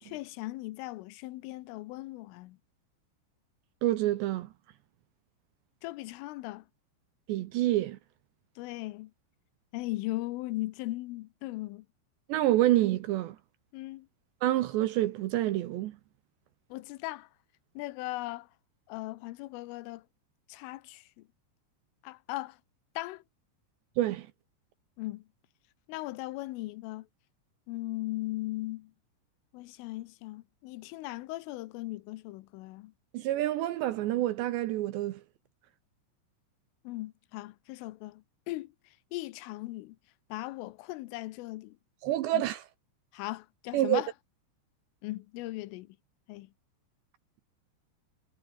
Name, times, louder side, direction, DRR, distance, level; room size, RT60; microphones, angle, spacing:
voice 1, 0.0-2.6 5.8-6.7 8.6-9.1 9.7-11.9 13.7-14.1 16.7-17.3 17.8-18.5 18.9-20.1 20.5-21.3 22.0-22.6 23.0-23.2 25.0-25.2 25.9-27.1 27.7-28.9 29.5-32.9 36.9-38.7 39.1-40.0 40.3-41.8 42.3-42.4 43.1-44.1 45.0-46.0 46.3-46.5, left 19 dB, 80° left, 3.4 m, -38 dB
voice 2, 3.8-4.5 7.3-8.0 12.3-13.4 14.4-16.0 24.0-24.3 33.1-35.2 42.0-42.6 43.7-44.0, right 15 dB, 75° right, 2.8 m, -27 dB
omnidirectional pair, 5.9 m